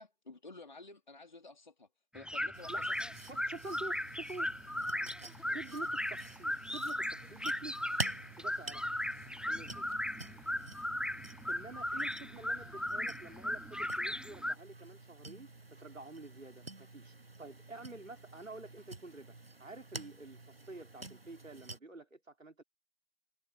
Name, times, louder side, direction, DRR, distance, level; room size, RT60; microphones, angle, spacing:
voice 1, 0.0-1.9 2.1-3.1, left 3 dB, 35° left, 3.7 m, -52 dB
sound 1, 2.2-14.5, left 1 dB, ahead, 0.3 m, -37 dB
sound 2, 2.5-21.8, right 2 dB, 45° right, 0.9 m, -49 dB
voice 2, 3.2-4.5 5.5-8.0 8.4-8.8 9.5-9.9 11.5-19.3 19.6-22.6, right 2 dB, 65° right, 4.8 m, -49 dB
figure-of-eight pair, 175°, 41 cm